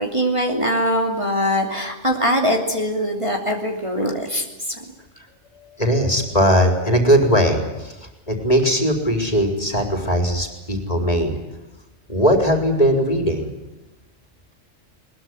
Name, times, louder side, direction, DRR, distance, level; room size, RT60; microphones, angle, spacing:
voice 1, 0.0-4.8, equal, 25° right, 2 dB, 3.0 m, -22 dB
voice 2, 5.6-8.0 8.3-11.3 12.1-13.5, equal, 30° left, 4 dB, 4.4 m, -19 dB
21.5 x 21.0 x 9.8 m, 1.0 s
omnidirectional pair, 1.4 m